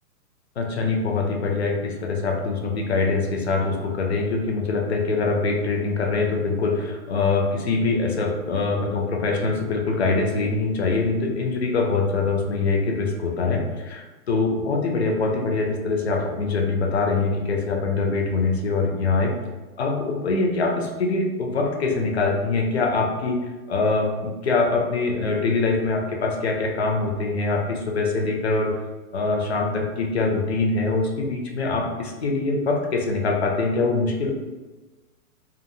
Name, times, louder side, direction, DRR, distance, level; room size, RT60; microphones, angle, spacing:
voice 1, 0.6-19.3 19.8-28.8 29.1-34.3, left 3 dB, 45° left, 2 dB, 0.4 m, -24 dB
2.7 x 2.4 x 2.6 m, 1.2 s
hypercardioid pair, 170°, 46 cm